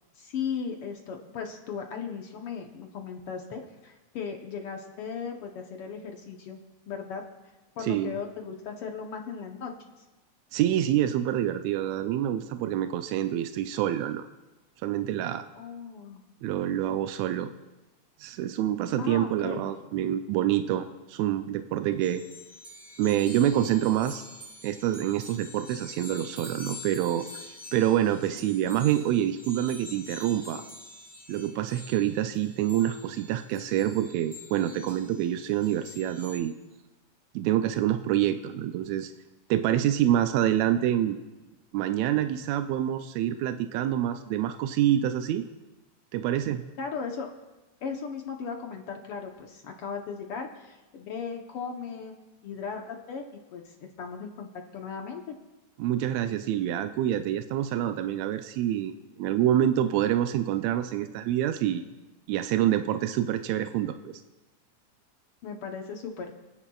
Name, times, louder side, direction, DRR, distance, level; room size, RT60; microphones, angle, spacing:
voice 1, 0.2-6.6 6.9-7.2 7.8-9.7 15.5-16.2 19.0-19.7 46.8-47.3 47.8-52.2 52.4-53.2 53.5-55.2 65.4-66.3, left 6 dB, 65° left, 3 dB, 1.4 m, -37 dB
voice 2, 7.8-8.1 10.5-14.3 14.8-15.5 16.4-17.5 18.2-22.2 23.0-24.3 24.6-27.3 27.7-30.6 31.3-36.6 37.3-39.1 39.5-41.2 41.7-45.4 46.1-46.6 55.8-58.9 59.2-61.9 62.3-64.2, right 11 dB, 80° right, 9 dB, 1.6 m, -26 dB
sound 1, 22.0-36.4, left 2 dB, 10° right, 2.2 m, -46 dB
27.0 x 9.8 x 2.3 m, 1.1 s
omnidirectional pair, 3.6 m